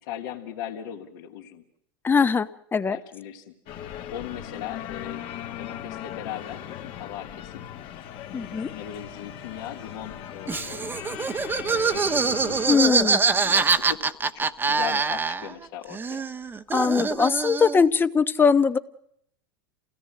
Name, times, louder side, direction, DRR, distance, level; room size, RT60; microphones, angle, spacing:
voice 1, 0.0-1.6 2.9-3.5 4.1-6.7 6.9-7.6 8.3-10.9 11.7-16.3, left 10 dB, 70° left, -3 dB, 2.7 m, -39 dB
voice 2, 2.0-3.0 8.3-8.7 12.7-13.2 16.7-18.8, left 5 dB, 20° left, 13 dB, 1.1 m, -21 dB
sound 1, 3.7-12.8, left 10 dB, 50° left, 2.0 m, -38 dB
Laughter, 10.5-15.7 15.9-17.9, right 4 dB, 15° right, 1.1 m, -24 dB
28.0 x 17.5 x 7.7 m, 0.73 s
supercardioid pair, 115°, 12 cm